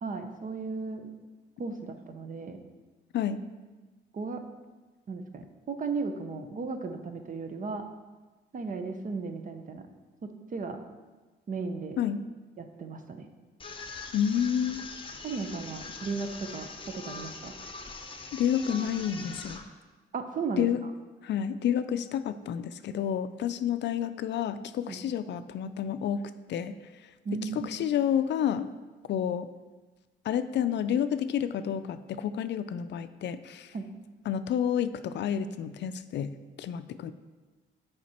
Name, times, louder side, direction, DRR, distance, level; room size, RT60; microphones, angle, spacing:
voice 1, 0.0-1.1 1.6-2.6 4.1-4.4 5.1-7.8 8.5-9.8 10.2-10.8 11.5-12.0 12.6-13.3 15.2-17.5 20.1-20.7 24.9-25.0 27.2-27.7 33.7-33.9, right 4 dB, 40° right, 7 dB, 0.8 m, -35 dB
sound 1, 13.6-19.6, left 3 dB, 25° left, 0.8 m, -42 dB
voice 2, 14.1-14.8 18.3-19.6 20.6-20.8 21.2-26.2 26.5-26.7 27.3-28.7 29.1-29.5 30.2-33.7 34.3-37.1, left 9 dB, 65° left, 12 dB, 0.4 m, -29 dB
7.2 x 5.0 x 4.3 m, 1.3 s
cardioid pair, 90°, 20 cm